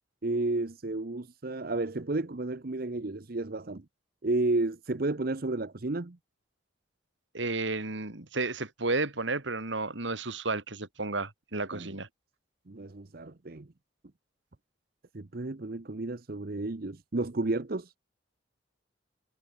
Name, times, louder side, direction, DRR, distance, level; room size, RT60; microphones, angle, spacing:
voice 1, 0.2-3.8 4.2-6.2 11.7-12.0 12.7-13.7 15.1-17.9, right 2 dB, 50° right, 0.9 m, -32 dB
voice 2, 7.3-12.1, right 3 dB, 75° right, 2.9 m, -32 dB
head